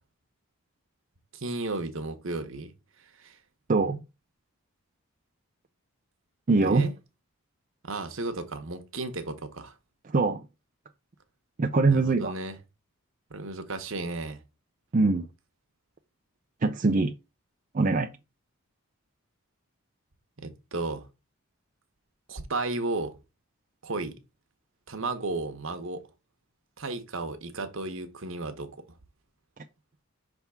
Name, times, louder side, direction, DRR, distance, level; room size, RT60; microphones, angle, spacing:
voice 1, 1.3-2.7 3.0-3.4 6.6-6.9 7.8-9.7 11.9-12.6 13.3-14.4 20.4-21.1 22.3-23.2 23.8-24.2 24.9-26.0 26.8-28.8, right 2 dB, 65° right, 1.1 m, -34 dB
voice 2, 3.7-4.0 6.5-6.9 10.1-10.4 11.6-12.3 14.9-15.2 16.6-17.1 17.7-18.1, right 3 dB, 35° right, 0.4 m, -23 dB
5.8 x 3.6 x 5.6 m
head